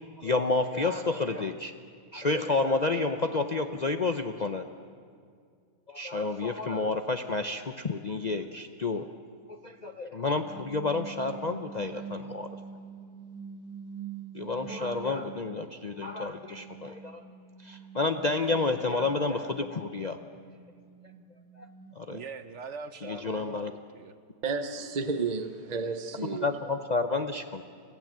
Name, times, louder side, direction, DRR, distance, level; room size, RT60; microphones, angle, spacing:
voice 1, 0.2-1.7 2.1-4.6 5.9-9.1 9.5-12.5 14.3-17.2 17.6-20.2 21.6-21.7 22.0-22.2 23.0-23.7 26.4-27.6, left 3 dB, 45° left, 0.5 m, -30 dB
sound 1, 10.3-15.6 15.9-22.2, right 7 dB, 75° right, 2.0 m, -46 dB
voice 2, 22.1-24.1, right 5 dB, 55° right, 1.0 m, -43 dB
voice 3, 24.4-26.5, right 4 dB, 40° right, 0.6 m, -31 dB
26.0 x 15.5 x 7.5 m
omnidirectional pair, 1.7 m